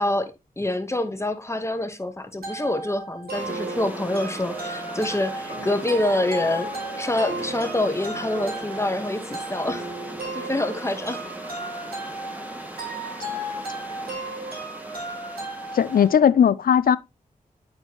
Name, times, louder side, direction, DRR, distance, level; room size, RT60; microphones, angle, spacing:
voice 1, 0.0-6.7 7.0-9.9 10.3-11.2, left 1 dB, 20° left, 1.0 m, -26 dB
sound 1, 2.4-16.2, right 1 dB, 85° right, 3.2 m, -35 dB
Shepherd's Hut Rain, 3.3-16.1, equal, 10° right, 1.5 m, -39 dB
sound 2, 3.5-12.6, right 3 dB, 65° right, 1.8 m, -39 dB
voice 2, 15.7-17.0, left 8 dB, 70° left, 0.4 m, -17 dB
9.2 x 4.4 x 2.9 m
wide cardioid pair, 75°, 15 cm